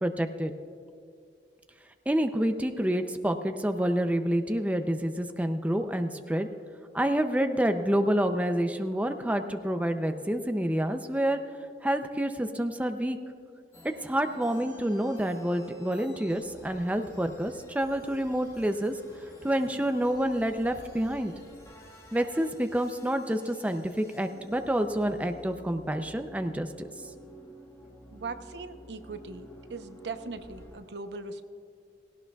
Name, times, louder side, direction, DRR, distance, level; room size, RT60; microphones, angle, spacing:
voice 1, 0.0-0.5 2.1-6.5 6.9-11.4 11.8-13.2 14.0-19.0 19.4-21.3 22.1-26.9, right 1 dB, 10° right, 7 dB, 0.5 m, -28 dB
sound 1, 13.7-30.8, equal, 20° left, 1.6 m, -51 dB
voice 2, 28.1-31.4, right 3 dB, 75° right, 9 dB, 0.8 m, -39 dB
17.5 x 17.5 x 2.3 m, 2.4 s
head